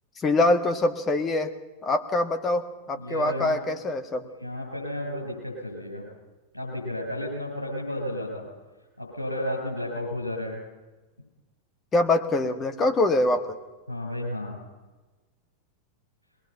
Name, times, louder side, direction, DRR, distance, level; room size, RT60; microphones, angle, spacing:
voice 1, 0.2-1.5 1.8-4.3 11.9-13.5, left 2 dB, 20° left, 7 dB, 1.9 m, -24 dB
voice 2, 2.9-4.0 4.4-6.1 6.5-8.4 9.0-10.6 13.9-14.6, left 1 dB, 90° left, 1 dB, 7.8 m, -32 dB
22.0 x 20.5 x 5.8 m, 1.2 s
figure-of-eight pair, 90°, 0 cm